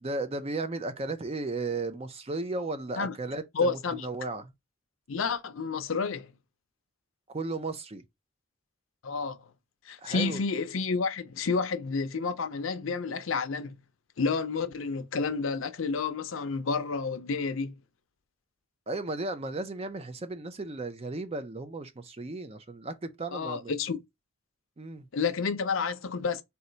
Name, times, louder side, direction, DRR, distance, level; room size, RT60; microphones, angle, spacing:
voice 1, 0.0-4.5 7.3-8.0 10.0-10.4 18.9-23.7 24.8-25.1, right 2 dB, 30° right, 0.5 m, -35 dB
voice 2, 3.5-4.1 5.1-6.3 9.0-9.4 9.9-13.7 14.2-17.7 23.3-24.0 25.1-26.4, left 4 dB, 70° left, 0.5 m, -30 dB
4.2 x 2.2 x 3.8 m
head